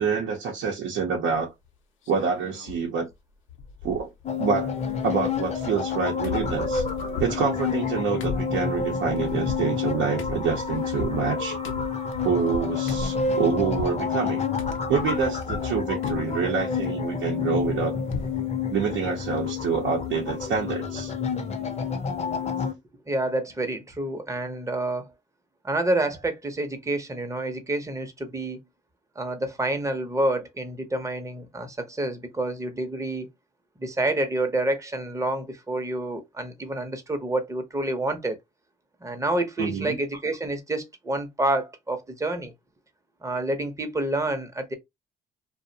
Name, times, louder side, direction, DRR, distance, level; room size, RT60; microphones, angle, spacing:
voice 1, 0.0-1.5 2.1-3.1 3.8-4.1 4.4-4.7 5.0-6.8 7.2-11.6 12.2-14.5 14.9-17.9 18.7-21.1 39.6-40.0, right 6 dB, 75° right, 0.6 m, -27 dB
sound 1, 1.3-1.7 2.0-2.8 3.1-3.2 3.5-4.3 4.6-5.9 6.2-14.0 14.6-15.7 16.0-16.5 16.8-18.4 18.8-18.9 19.2-19.4, left 4 dB, 80° left, 0.6 m, -38 dB
sound 2, 4.2-22.7, left 5 dB, 35° left, 0.5 m, -29 dB
voice 2, 23.1-25.1 25.6-28.6 29.2-33.3 33.8-38.4 39.0-42.5 43.2-44.7, right 1 dB, 15° right, 0.6 m, -28 dB
2.4 x 2.0 x 2.6 m
cardioid pair, 90°, 20 cm